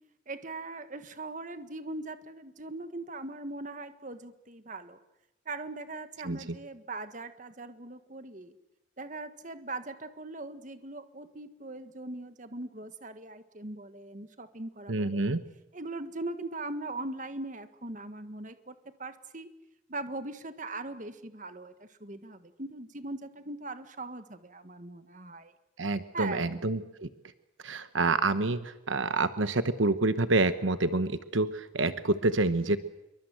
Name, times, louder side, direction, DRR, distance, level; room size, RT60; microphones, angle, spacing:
voice 1, 0.3-5.0 5.4-8.5 9.0-15.3 15.7-19.5 19.9-25.5 26.1-26.6, right 2 dB, 40° right, 10 dB, 1.6 m, -40 dB
voice 2, 14.9-15.4 25.8-27.1 27.6-32.8, right 2 dB, 80° right, 12 dB, 1.1 m, -27 dB
27.0 x 23.5 x 7.8 m, 0.89 s
head